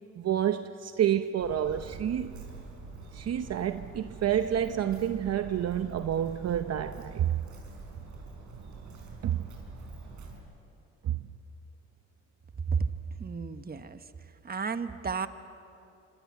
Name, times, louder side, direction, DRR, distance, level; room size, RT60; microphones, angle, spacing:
voice 1, 0.2-2.3 3.1-7.3 9.2-9.4 11.0-11.2, right 10 dB, 55° right, 9 dB, 0.8 m, -29 dB
Walk footsteps, 1.4-10.4, right 4 dB, 75° right, 5.5 m, -45 dB
voice 2, 13.2-14.0 14.4-15.3, right 5 dB, 30° right, 10 dB, 1.3 m, -32 dB
26.5 x 26.0 x 7.7 m, 2.6 s
cardioid pair, 90°, 30 cm